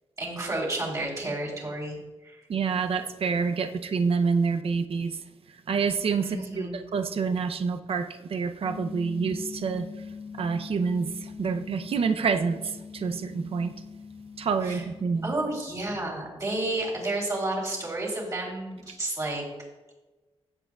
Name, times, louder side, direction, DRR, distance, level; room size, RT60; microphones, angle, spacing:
voice 1, 0.2-1.9 2.2-2.4 6.2-6.8 14.6-14.8 15.2-19.4, right 2 dB, 30° right, -2 dB, 3.4 m, -31 dB
voice 2, 2.5-5.2 5.7-9.9 10.4-13.7 14.4-15.3, right 5 dB, 60° right, 9 dB, 0.6 m, -27 dB
sound 1, 8.6-15.6, left 5 dB, 35° left, 0.4 m, -42 dB
16.0 x 7.9 x 2.4 m, 1.1 s
wide cardioid pair, 155°, 11 cm